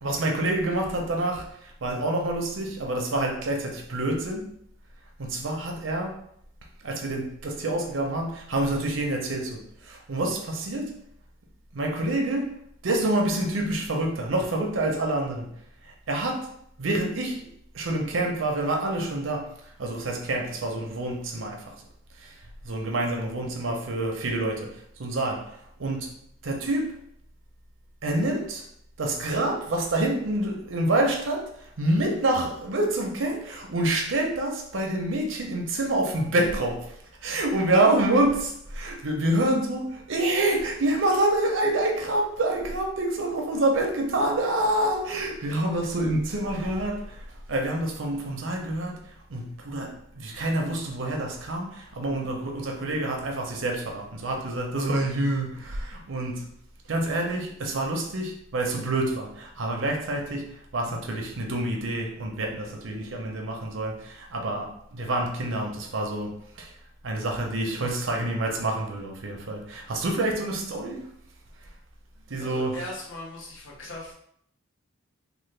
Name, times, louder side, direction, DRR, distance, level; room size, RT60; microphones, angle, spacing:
voice 1, 0.0-4.6 5.2-6.2 6.8-11.0 11.7-12.6 12.8-15.5 15.8-16.5 16.8-17.5 17.7-19.5 19.8-21.7 22.2-22.3 22.6-26.2 26.4-27.0 28.0-28.7 29.0-37.0 37.2-47.2 47.5-56.5 56.9-66.7 67.0-71.1 72.3-72.8, right 1 dB, 75° right, 0.7 m, -27 dB
voice 2, 72.4-74.1, left 1 dB, 75° left, 1.0 m, -39 dB
3.3 x 2.2 x 3.2 m
head